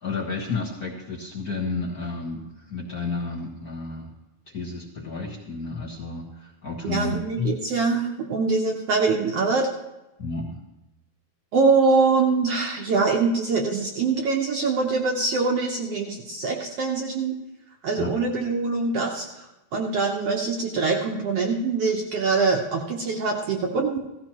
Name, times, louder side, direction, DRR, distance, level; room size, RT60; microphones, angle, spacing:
voice 1, 0.0-4.1 4.5-7.6 10.2-10.6 18.0-18.1, left 4 dB, 70° left, -2 dB, 0.8 m, -31 dB
voice 2, 6.8-9.7 11.5-17.3 17.8-24.0, right 4 dB, 75° right, 1 dB, 1.4 m, -24 dB
17.0 x 14.5 x 3.0 m, 0.98 s
omnidirectional pair, 4.1 m